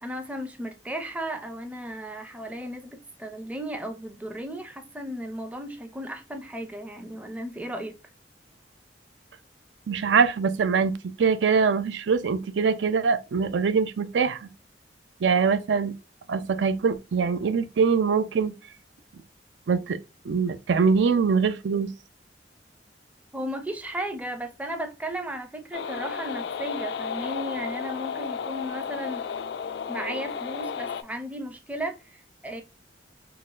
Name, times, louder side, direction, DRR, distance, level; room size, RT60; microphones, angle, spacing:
voice 1, 0.0-7.9 23.3-29.2 29.9-32.6, right 1 dB, 10° right, 0.5 m, -35 dB
voice 2, 9.9-14.5 15.2-16.0 16.3-18.5 19.7-20.0 20.3-21.9, right 5 dB, 80° right, 0.4 m, -23 dB
sound 1, 25.7-31.0, left 6 dB, 70° left, 0.3 m, -33 dB
3.9 x 2.1 x 2.4 m
head